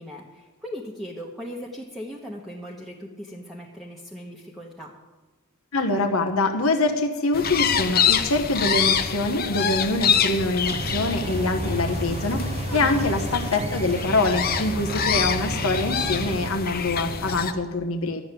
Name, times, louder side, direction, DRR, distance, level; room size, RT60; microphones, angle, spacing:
voice 1, 0.0-5.0 12.7-13.1, equal, ahead, -4 dB, 1.0 m, -38 dB
voice 2, 5.7-18.2, left 2 dB, 75° left, 5 dB, 1.1 m, -24 dB
sound 1, 7.3-17.5, left 7 dB, 45° left, 0.7 m, -26 dB
sound 2, 10.6-16.5, right 3 dB, 30° right, 0.4 m, -33 dB
12.5 x 7.1 x 9.1 m, 1.2 s
head